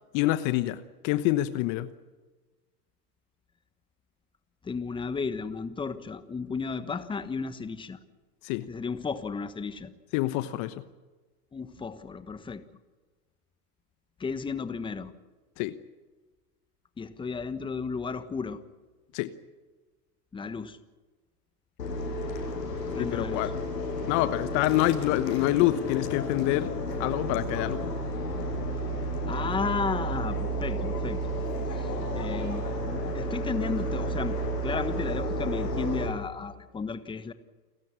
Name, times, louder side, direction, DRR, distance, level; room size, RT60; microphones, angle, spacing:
voice 1, 0.1-1.9 8.4-8.7 10.1-10.8 15.6-15.8 19.1-19.3 23.0-23.5 24.1-26.7 27.0-27.8, left 15 dB, 40° left, 13 dB, 1.1 m, -26 dB
voice 2, 4.6-8.0 8.7-9.9 11.5-12.6 14.2-15.1 17.0-18.6 20.3-20.8 22.9-23.5 29.3-31.2 31.7-37.3, left 5 dB, 10° left, 12 dB, 1.2 m, -34 dB
sound 1, 21.8-36.1, equal, 85° left, 7.9 m, -31 dB
29.5 x 13.5 x 9.8 m, 1.3 s
hypercardioid pair, 110°, 48 cm